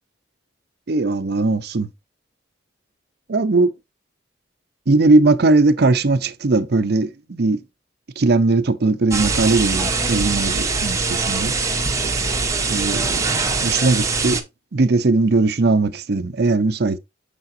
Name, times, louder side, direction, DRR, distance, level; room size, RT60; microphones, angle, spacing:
voice 1, 0.9-1.9 3.3-3.7 4.9-7.6 8.2-11.6 12.7-14.4 14.7-17.0, right 3 dB, 60° right, 0.6 m, -19 dB
sound 1, 9.1-14.4, right 4 dB, 15° right, 0.9 m, -22 dB
6.9 x 5.7 x 2.6 m
head